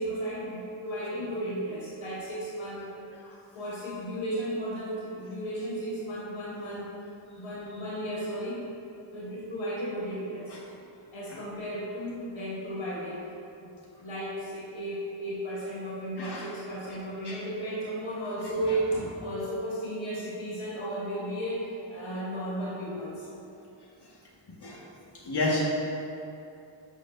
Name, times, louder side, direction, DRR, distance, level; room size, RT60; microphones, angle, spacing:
voice 1, 0.0-3.1 3.5-6.9 7.3-8.7 9.1-10.6 11.1-13.2 13.6-13.7 14.0-23.3, right 1 dB, 75° left, -7 dB, 1.4 m, -34 dB
voice 2, 16.1-16.5 17.2-17.4 24.5-24.8 25.2-25.7, left 1 dB, 55° left, -5 dB, 1.8 m, -30 dB
11.5 x 6.6 x 2.7 m, 2.8 s
wide cardioid pair, 120°, 47 cm